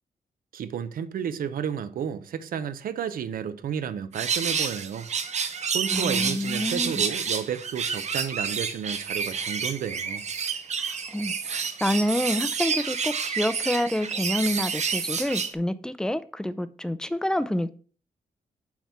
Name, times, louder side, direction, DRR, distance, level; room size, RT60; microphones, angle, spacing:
voice 1, 0.5-5.1 5.7-10.2, right 8 dB, 80° right, 0.6 m, -32 dB
sound 1, 4.1-15.5, right 6 dB, 50° right, 0.8 m, -29 dB
voice 2, 5.9-7.1 10.9-17.7, left 1 dB, 5° left, 0.4 m, -28 dB
5.8 x 4.3 x 5.9 m
wide cardioid pair, 135°, 15 cm